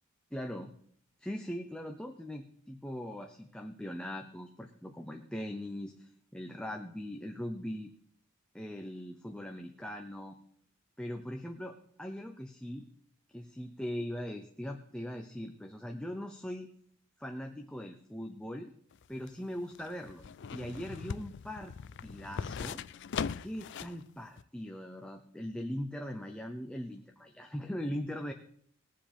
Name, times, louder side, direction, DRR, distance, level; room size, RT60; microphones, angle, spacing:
voice 1, 0.3-0.7 1.2-7.9 8.5-10.4 11.0-12.9 13.3-16.7 17.2-18.7 19.1-20.2 20.5-21.7 22.0-22.8 23.4-28.3, equal, 5° left, 3 dB, 0.6 m, -40 dB
sound 1, 18.9-24.0 24.4-24.5, left 6 dB, 55° left, 0.4 m, -40 dB
21.0 x 7.6 x 3.5 m, 0.63 s
head